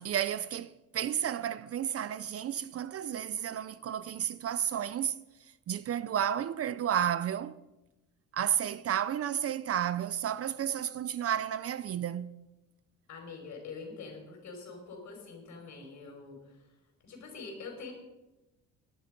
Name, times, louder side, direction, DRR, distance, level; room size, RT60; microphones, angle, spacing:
voice 1, 0.0-5.2 5.7-7.5 8.3-12.4, right 9 dB, 45° right, 0.5 m, -32 dB
voice 2, 13.1-16.6 17.0-17.9, left 4 dB, 55° left, 5.4 m, -45 dB
18.5 x 11.5 x 5.2 m
cardioid pair, 140°, 34 cm